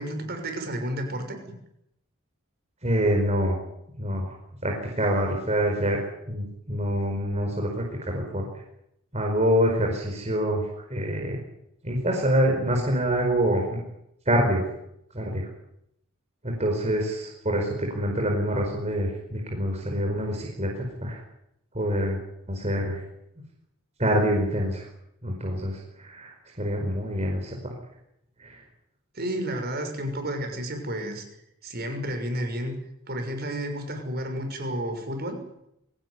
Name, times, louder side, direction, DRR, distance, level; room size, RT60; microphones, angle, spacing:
voice 1, 0.0-1.6 29.1-31.2 31.6-32.8 33.1-35.4, right 1 dB, 45° right, 5 dB, 6.2 m, -31 dB
voice 2, 2.8-3.6 4.0-4.2 4.6-6.0 6.3-7.8 8.1-8.5 9.1-11.4 11.8-13.8 14.3-14.6 15.1-15.4 16.4-21.2 21.7-22.2 22.5-23.0 24.0-24.8 25.2-26.3 26.6-27.7 28.4-28.6, equal, 30° right, 0 dB, 5.0 m, -26 dB
24.0 x 17.0 x 9.7 m, 0.79 s
head